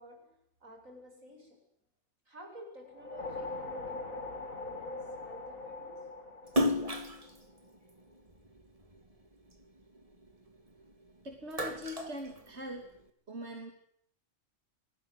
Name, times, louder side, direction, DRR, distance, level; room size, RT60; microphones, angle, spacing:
voice 1, 0.0-1.7 2.2-6.1 9.0-9.1 11.6-11.8, equal, 80° right, 8.4 m, -52 dB
sound 1, 2.9-7.4, left 2 dB, 90° left, 3.8 m, -41 dB
Splash splatter, 6.5-9.0 9.5-10.9 11.3-13.0, left 1 dB, 25° right, 2.4 m, -34 dB
voice 2, 11.2-12.8 13.3-13.7, equal, 55° right, 3.4 m, -42 dB
28.5 x 20.5 x 8.2 m
omnidirectional pair, 1.4 m